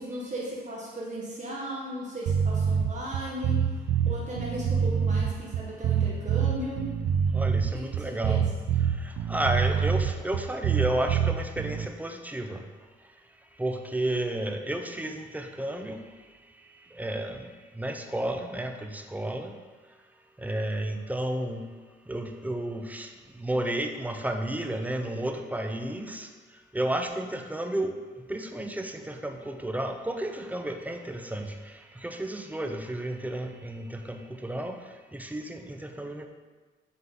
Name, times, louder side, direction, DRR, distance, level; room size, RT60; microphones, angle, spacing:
voice 1, 0.0-3.7 4.0-6.8 8.0-8.4, equal, 40° right, -5 dB, 1.4 m, -36 dB
sound 1, 2.3-11.9, right 7 dB, 65° right, 0.4 m, -26 dB
voice 2, 7.3-8.5 9.0-12.6 13.6-16.0 17.0-17.5 17.8-19.5 20.4-21.6 22.1-23.1 23.4-26.3 26.7-27.9 28.3-31.5 32.0-34.8 35.1-36.3, right 1 dB, 10° right, 5 dB, 0.6 m, -32 dB
7.9 x 3.7 x 3.7 m, 1.4 s
cardioid pair, 90°, 20 cm